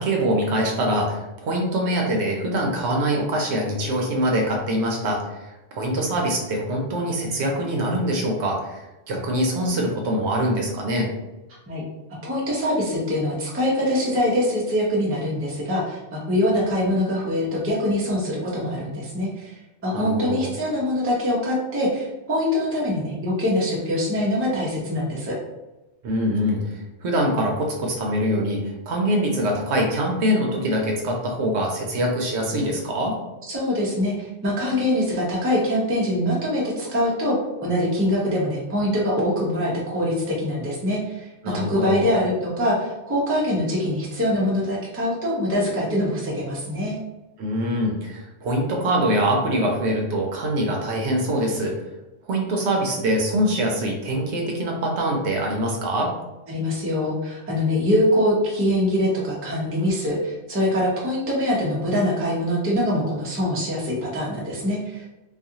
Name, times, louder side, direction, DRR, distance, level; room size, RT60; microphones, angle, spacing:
voice 1, 0.0-11.1 19.9-20.5 26.0-33.1 41.4-42.2 47.4-51.7 52.3-56.1, equal, 75° right, 0 dB, 0.9 m, -24 dB
voice 2, 12.2-19.5 19.8-25.3 33.5-37.4 37.6-41.3 41.5-47.0 56.5-65.0, left 1 dB, 15° right, -5 dB, 0.4 m, -23 dB
2.4 x 2.4 x 2.7 m, 1.0 s
omnidirectional pair, 1.2 m